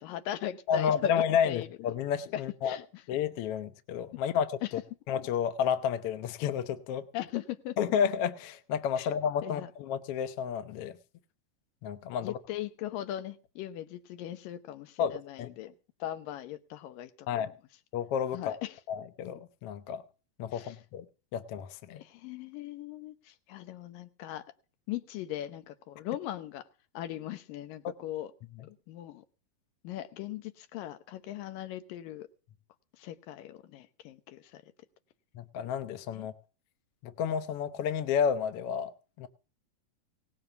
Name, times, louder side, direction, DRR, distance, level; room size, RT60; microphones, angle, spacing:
voice 1, 0.0-1.7 2.3-2.8 4.6-4.7 7.1-7.8 9.0-9.1 9.4-9.7 12.2-15.7 16.0-17.5 18.3-18.8 20.5-20.8 21.9-24.4 24.9-26.6 26.9-28.3 28.7-29.2 29.8-32.3 33.0-34.6 36.1-36.3, left 13 dB, 90° left, 2.7 m, -39 dB
voice 2, 0.7-2.8 3.1-4.5 5.1-7.0 7.8-11.0 11.8-12.3 15.0-15.5 17.3-17.5 17.9-18.6 18.9-20.0 20.4-21.1 21.3-22.0 28.6-28.7 35.3-36.3 37.0-39.3, left 8 dB, 70° left, 1.4 m, -31 dB
18.0 x 7.4 x 6.8 m
omnidirectional pair, 3.8 m